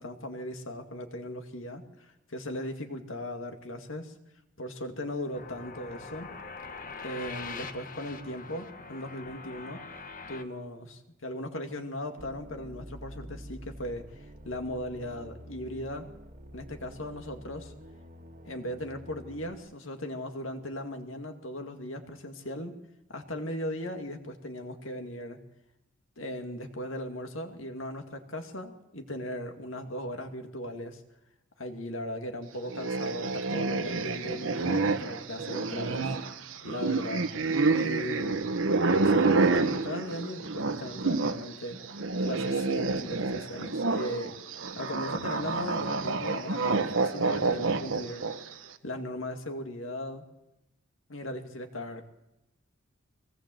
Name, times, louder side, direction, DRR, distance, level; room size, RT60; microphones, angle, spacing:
voice 1, 0.0-4.1 4.6-6.3 7.0-9.8 10.3-16.1 16.5-17.7 18.4-22.8 23.1-25.4 26.2-31.0 31.6-36.1 36.6-37.3 37.7-38.5 39.0-41.8 42.2-44.3 44.8-48.3 48.8-50.2 51.1-52.0, left 1 dB, 75° left, 5 dB, 2.3 m, -38 dB
sound 1, 5.3-10.4, left 4 dB, 40° left, 1.3 m, -43 dB
sound 2, 12.2-19.5, equal, 40° right, 1.7 m, -47 dB
sound 3, 32.7-41.4 41.7-48.5, right 3 dB, 70° right, 1.3 m, -28 dB
22.5 x 18.5 x 7.8 m, 0.93 s
head